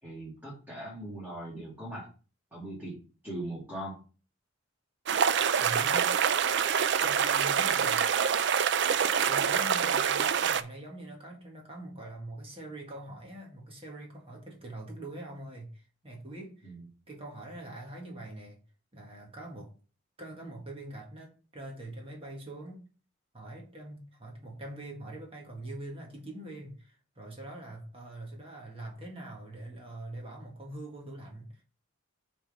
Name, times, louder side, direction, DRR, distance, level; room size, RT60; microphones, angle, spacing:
voice 1, 0.0-2.1 2.5-2.9 3.2-4.0 16.6-16.8, right 1 dB, 10° right, 2.2 m, -40 dB
sound 1, 5.1-10.6, right 7 dB, 55° right, 0.4 m, -26 dB
voice 2, 5.4-6.1 7.0-8.0 9.3-16.7 17.1-18.6 18.9-19.7 20.2-22.8 23.3-31.6, right 1 dB, 25° right, 1.5 m, -43 dB
6.1 x 3.7 x 5.3 m
head